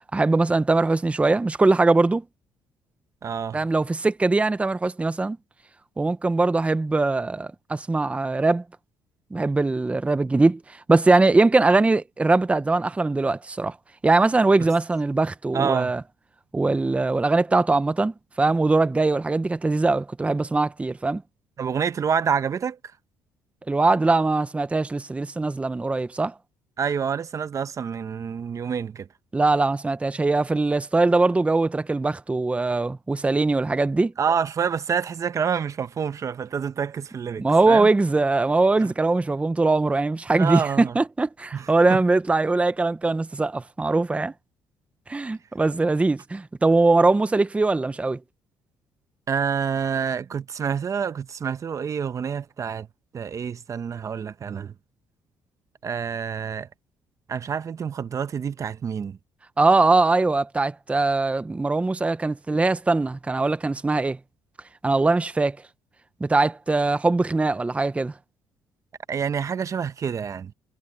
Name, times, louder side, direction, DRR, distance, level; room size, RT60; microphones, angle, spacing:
voice 1, 0.1-2.2 3.5-5.4 6.0-8.6 9.3-13.8 14.0-16.0 16.5-21.2 23.7-26.3 29.3-34.1 37.4-44.3 45.1-48.2 59.6-64.2 64.8-65.6 66.2-68.1, right 3 dB, 15° right, 0.8 m, -21 dB
voice 2, 3.2-3.6 15.5-15.9 21.6-22.8 26.8-29.1 34.2-37.9 38.8-38.9 40.3-40.9 41.5-42.0 49.3-52.9 53.1-54.7 55.8-56.7 57.3-59.2 69.1-70.5, right 7 dB, 40° right, 0.9 m, -27 dB
cardioid pair, 95°, 8 cm